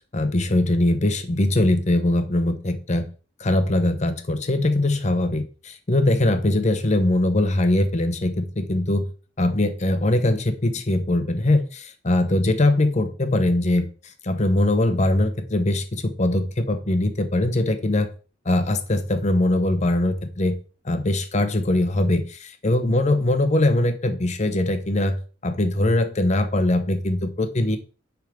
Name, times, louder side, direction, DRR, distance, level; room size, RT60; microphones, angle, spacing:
voice 1, 0.1-3.1 3.4-9.1 9.4-13.9 14.2-18.1 18.4-20.6 20.8-27.8, left 1 dB, 40° left, 9 dB, 0.8 m, -21 dB
6.4 x 3.6 x 5.0 m, 0.37 s
head